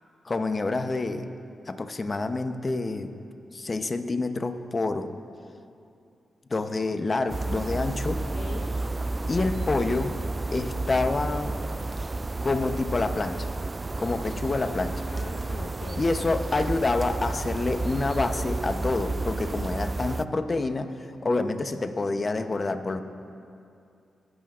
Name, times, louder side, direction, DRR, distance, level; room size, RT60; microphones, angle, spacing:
voice 1, 0.2-1.3 1.7-3.2 3.5-5.1 6.5-8.2 9.3-10.2 10.5-11.6 12.4-13.5 14.0-15.1 15.9-20.9 21.2-23.0, left 3 dB, 45° left, 9 dB, 0.8 m, -27 dB
sound 1, 7.3-20.2, right 2 dB, 35° right, 0.3 m, -31 dB
voice 2, 8.3-8.7 15.1-16.0, left 5 dB, 70° left, 4 dB, 0.5 m, -42 dB
20.5 x 11.0 x 2.5 m, 2.5 s
supercardioid pair, 40°, 0 cm